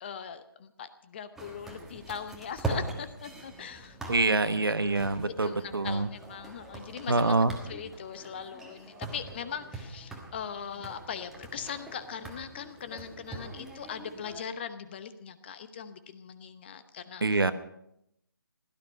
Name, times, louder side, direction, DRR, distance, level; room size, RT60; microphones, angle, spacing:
voice 1, 0.0-4.0 4.3-4.7 5.2-7.4 7.7-17.4, left 7 dB, 30° left, 12 dB, 0.9 m, -40 dB
sound 1, 1.3-14.4, right 2 dB, 5° right, 1.4 m, -42 dB
voice 2, 4.1-6.1 7.1-7.5 17.2-17.5, right 3 dB, 75° right, 12 dB, 1.1 m, -25 dB
16.5 x 13.0 x 5.5 m, 0.79 s
figure-of-eight pair, 150°, 12 cm